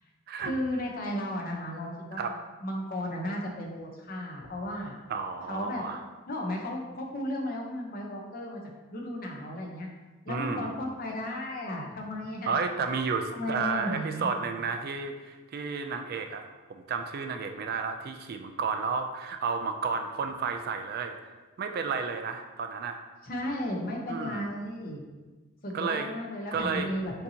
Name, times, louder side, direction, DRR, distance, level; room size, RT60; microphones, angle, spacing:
voice 1, 0.4-2.3 2.6-4.9 5.5-5.8 6.3-8.6 8.9-9.9 10.2-12.6 13.3-14.3 23.2-25.0 25.6-27.2, left 1 dB, 45° left, 0 dB, 0.7 m, -34 dB
voice 2, 5.1-6.1 10.3-10.8 12.5-21.2 21.6-23.0 24.1-24.5 25.7-26.1 26.5-26.9, right 5 dB, 50° right, 6 dB, 0.3 m, -32 dB
6.7 x 2.8 x 2.8 m, 1.2 s
head